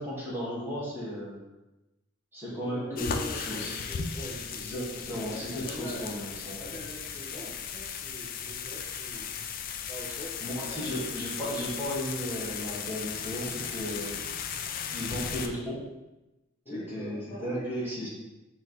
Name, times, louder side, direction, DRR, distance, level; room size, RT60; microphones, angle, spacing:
voice 1, 0.0-1.4 2.3-3.7 4.5-6.7 10.4-14.3 14.9-15.8 16.7-18.1, equal, 10° right, -8 dB, 1.6 m, -35 dB
voice 2, 2.6-4.7 5.1-6.1 6.6-9.4 9.9-10.3 10.6-11.2 16.6-18.1, equal, 30° left, -6 dB, 0.8 m, -43 dB
sound 1, 3.0-15.5, left 7 dB, 45° left, 0.3 m, -36 dB
4.4 x 2.9 x 3.9 m, 1.0 s
head